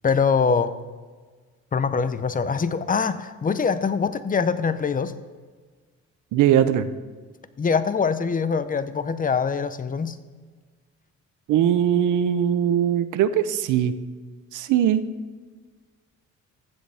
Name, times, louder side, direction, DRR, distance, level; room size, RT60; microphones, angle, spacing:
voice 1, 0.0-0.7 1.7-5.1 7.6-10.2, left 5 dB, 30° left, 13 dB, 0.7 m, -23 dB
voice 2, 6.3-6.9 11.5-13.9 14.5-15.0, right 9 dB, 85° right, 13 dB, 0.7 m, -20 dB
15.0 x 7.8 x 3.5 m, 1.4 s
cardioid pair, 90°, 30 cm